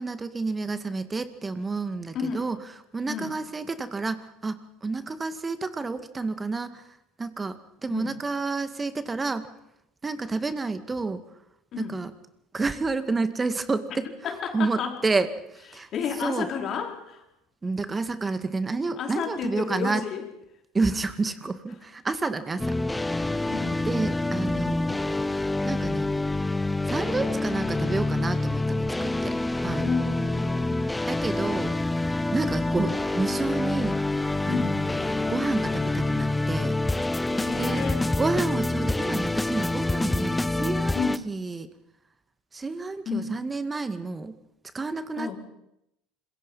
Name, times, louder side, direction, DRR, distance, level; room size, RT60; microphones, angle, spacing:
voice 1, 0.0-2.6 2.9-9.5 10.0-11.2 11.8-12.1 12.5-14.1 14.5-15.9 16.2-16.5 17.6-20.0 20.7-23.3 23.9-25.2 25.6-26.1 26.8-29.4 29.6-29.9 31.1-34.0 34.4-36.8 37.6-41.0 41.3-41.7 42.5-44.3 44.7-45.4, right 3 dB, 20° right, 11 dB, 2.1 m, -30 dB
voice 2, 2.1-2.5 3.1-3.3 7.9-8.1 11.7-12.0 14.2-15.0 15.7-17.2 19.0-20.2 20.8-21.0 23.1-23.9 29.8-30.9 34.5-34.8 37.2-38.1 40.9-41.3 43.1-43.4 45.2-45.4, left 6 dB, 50° left, 3 dB, 4.9 m, -32 dB
sound 1, 22.6-41.2, left 2 dB, 10° left, 0.9 m, -27 dB
26.5 x 22.0 x 5.7 m, 0.84 s
hypercardioid pair, 75°, 0 cm